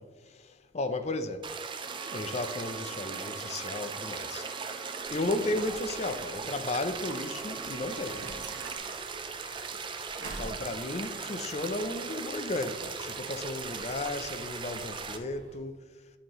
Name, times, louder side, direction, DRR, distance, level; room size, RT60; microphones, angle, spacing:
voice 1, 0.0-1.5 2.1-4.5 5.1-8.3 10.2-15.8, left 2 dB, 35° left, 0.5 m, -34 dB
sound 1, 1.4-15.2, right 5 dB, 25° right, 0.5 m, -38 dB
sound 2, 1.8-8.8, right 5 dB, 55° right, 1.0 m, -46 dB
sound 3, 5.0-15.6, right 2 dB, 85° right, 1.1 m, -49 dB
9.9 x 4.6 x 3.0 m
head